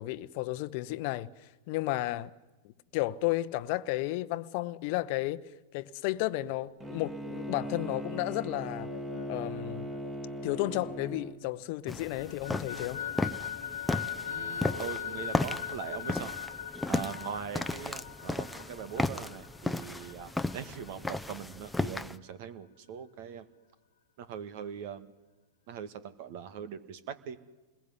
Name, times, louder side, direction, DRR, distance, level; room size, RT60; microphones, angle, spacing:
voice 1, 0.0-2.3 2.9-5.4 5.7-8.9 9.3-9.9 10.4-13.0, left 17 dB, 55° left, 0.9 m, -33 dB
Bowed string instrument, 6.8-11.3, equal, 15° right, 2.7 m, -39 dB
sound 1, 8.9-11.6 11.9-21.3, left 8 dB, 75° left, 1.3 m, -41 dB
sound 2, 11.9-22.2, left 2 dB, 5° left, 0.9 m, -35 dB
voice 2, 14.3-16.3 16.9-23.5 24.2-25.1 25.7-27.4, right 8 dB, 55° right, 1.9 m, -41 dB
28.0 x 21.0 x 9.7 m
hypercardioid pair, 100°, 0 cm